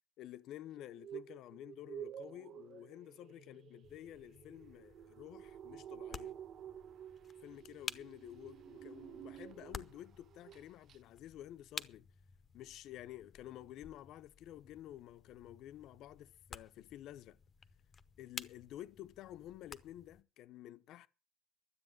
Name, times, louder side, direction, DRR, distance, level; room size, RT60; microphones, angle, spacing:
voice 1, 0.2-6.4 7.4-12.1 12.5-17.4 18.2-21.1, left 13 dB, 60° left, 0.7 m, -51 dB
sound 1, 0.8-10.0 10.3-10.6 10.9-11.0, right 9 dB, 45° right, 0.7 m, -51 dB
sound 2, 3.8-20.2, left 6 dB, 25° left, 0.8 m, -53 dB
12.5 x 8.4 x 7.9 m
cardioid pair, 155°, 0 cm